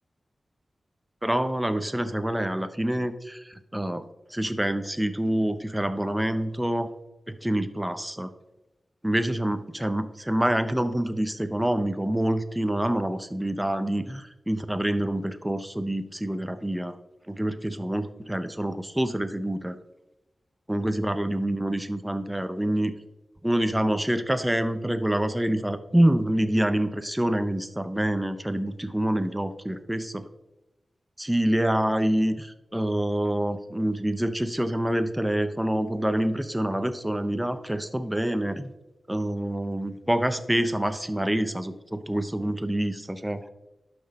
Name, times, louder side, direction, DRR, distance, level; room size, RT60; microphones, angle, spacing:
voice 1, 1.2-4.0 4.3-6.9 7.3-8.3 9.0-17.0 17.3-19.8 20.7-22.9 23.4-30.3 31.2-38.7 39.1-43.5, right 1 dB, 5° right, 11 dB, 0.6 m, -26 dB
11.5 x 6.1 x 4.1 m, 1.0 s
wide cardioid pair, 125°, 0 cm